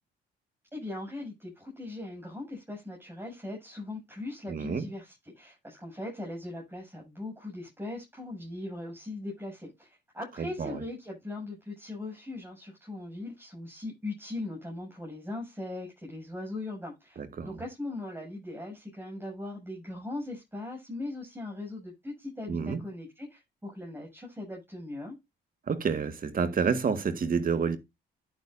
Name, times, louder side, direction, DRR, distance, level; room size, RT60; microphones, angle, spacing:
voice 1, 0.7-25.2, left 2 dB, 10° right, 7.6 m, -39 dB
voice 2, 4.5-4.9 10.4-10.8 17.2-17.6 22.5-22.8 25.7-27.8, right 5 dB, 45° right, 1.7 m, -29 dB
10.5 x 9.1 x 2.7 m
cardioid pair, 90°, 20 cm